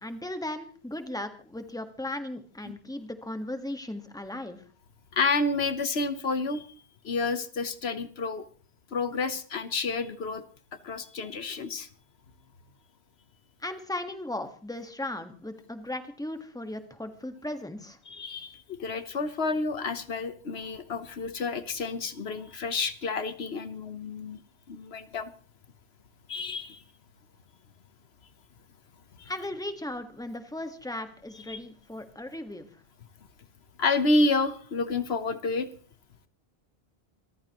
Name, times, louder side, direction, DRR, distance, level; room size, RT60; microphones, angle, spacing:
voice 1, 0.0-4.6 13.6-18.0 29.2-32.7, left 1 dB, 5° left, 7 dB, 1.5 m, -37 dB
voice 2, 5.1-6.7 7.0-8.5 8.9-10.4 10.8-11.9 18.1-24.4 24.7-25.3 26.3-26.8 29.2-29.3 31.5-31.6 33.8-35.7, left 3 dB, 80° left, 11 dB, 1.3 m, -29 dB
26.0 x 14.5 x 3.1 m, 0.42 s
omnidirectional pair, 1.0 m